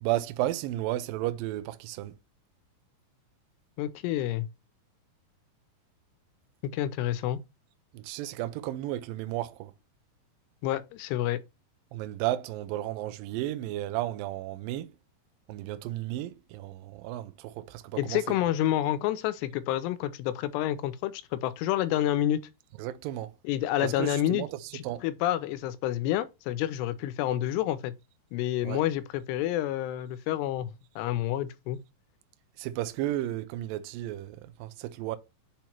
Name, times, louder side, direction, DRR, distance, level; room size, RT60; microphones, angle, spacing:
voice 1, 0.0-2.1 7.9-9.7 11.9-14.9 15.5-18.4 22.8-23.3 23.8-25.0 28.6-28.8 32.6-35.2, right 14 dB, 85° right, 2.1 m, -33 dB
voice 2, 3.8-4.5 6.7-7.4 10.6-11.4 18.0-22.4 23.4-24.4 24.7-27.9 28.3-31.8, left 13 dB, 90° left, 2.7 m, -29 dB
6.9 x 3.0 x 5.7 m
omnidirectional pair, 4.8 m